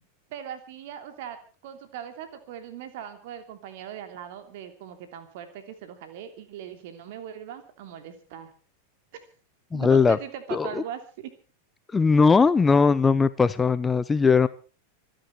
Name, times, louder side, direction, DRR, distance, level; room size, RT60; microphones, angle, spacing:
voice 1, 0.3-1.4 1.6-8.5 9.1-9.2 9.7-11.3, right 9 dB, 50° right, 9 dB, 2.9 m, -40 dB
voice 2, 9.7-10.2 10.5-10.8 11.9-14.5, left 5 dB, 15° left, 16 dB, 0.8 m, -19 dB
25.5 x 10.5 x 4.7 m, 0.38 s
figure-of-eight pair, 90°, 0 cm